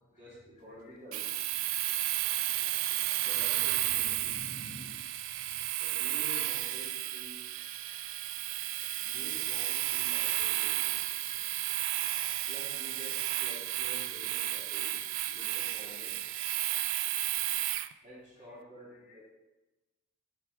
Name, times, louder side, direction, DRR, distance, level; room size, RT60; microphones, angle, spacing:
voice 1, 0.2-1.3 3.2-4.3 5.8-7.5 9.0-10.9 11.3-11.5 12.5-15.0 15.3-16.2 18.0-19.3, equal, 35° right, -8 dB, 2.3 m, -50 dB
voice 2, 0.7-2.2 3.6-5.7 6.7-9.2 9.8-11.6 12.0-12.5 13.0-13.4 14.0-14.1 14.8-17.7 18.5-18.6 19.0-19.3, left 1 dB, 35° left, 1 dB, 1.0 m, -56 dB
Domestic sounds home sounds, 1.1-17.9, right 15 dB, 65° right, 0.3 m, -32 dB
7.4 x 4.8 x 4.8 m, 1.1 s
head